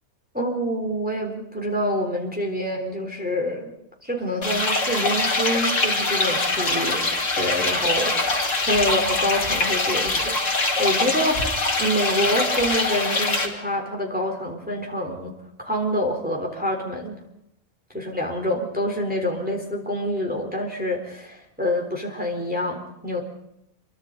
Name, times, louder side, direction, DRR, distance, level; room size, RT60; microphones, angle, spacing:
voice 1, 0.3-3.7 4.0-10.4 10.8-15.3 15.6-17.2 17.9-23.2, equal, 5° right, 1 dB, 3.7 m, -26 dB
sound 1, 4.4-13.5, left 2 dB, 60° left, 2.9 m, -23 dB
28.5 x 23.0 x 3.9 m, 0.80 s
omnidirectional pair, 1.5 m